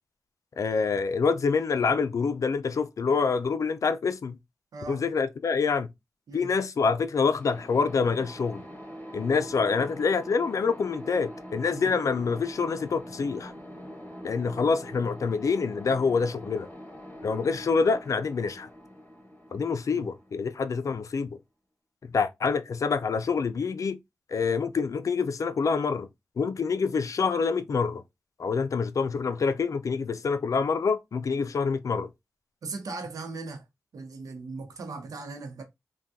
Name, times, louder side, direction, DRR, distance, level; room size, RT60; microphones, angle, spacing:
voice 1, 0.6-4.4 4.9-5.9 6.3-8.6 9.1-13.5 14.2-16.7 17.2-18.7 19.5-21.4 22.0-24.0 24.3-26.1 26.4-28.0 28.4-32.1, left 5 dB, 65° left, 0.4 m, -26 dB
voice 2, 4.7-5.0 6.3-6.5 11.7-11.9 19.9-20.1 32.6-33.6 33.9-35.6, right 3 dB, 85° right, 0.8 m, -38 dB
sound 1, 7.4-21.0, equal, 25° left, 1.3 m, -43 dB
3.4 x 2.2 x 2.7 m
cardioid pair, 50°, 6 cm